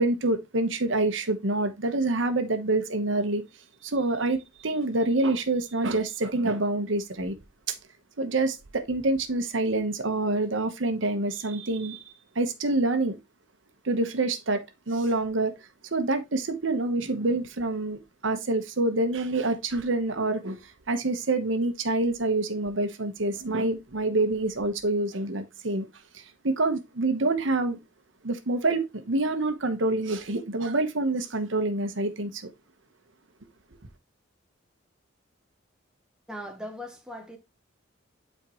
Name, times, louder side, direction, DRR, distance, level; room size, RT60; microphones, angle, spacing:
voice 1, 0.0-3.4 3.8-4.4 4.6-7.3 8.2-13.2 13.8-15.5 15.9-25.9 26.1-27.8 28.2-32.4, right 2 dB, 75° right, 1.0 m, -27 dB
voice 2, 36.3-37.4, equal, 5° right, 1.1 m, -39 dB
8.6 x 4.5 x 3.0 m
head